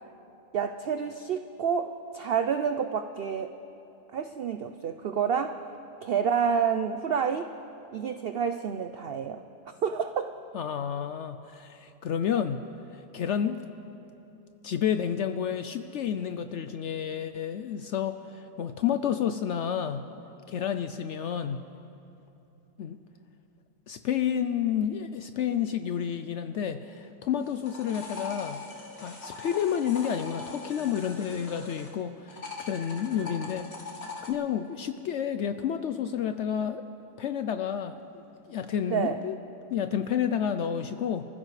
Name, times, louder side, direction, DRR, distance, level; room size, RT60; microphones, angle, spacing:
voice 1, 0.5-3.5 4.1-5.6 6.0-7.5 7.9-9.4 9.8-10.3 38.9-39.2, right 7 dB, 85° right, 8 dB, 0.5 m, -28 dB
voice 2, 10.5-12.6 12.9-13.7 14.6-20.0 20.5-21.6 22.8-23.0 23.9-28.6 29.0-36.8 37.2-38.2 38.5-39.4 39.7-41.3, left 8 dB, 70° left, 9 dB, 0.7 m, -30 dB
sound 1, 27.4-31.9 32.3-34.3, left 4 dB, 45° left, 1.9 m, -41 dB
28.0 x 15.0 x 3.2 m, 2.9 s
omnidirectional pair, 1.6 m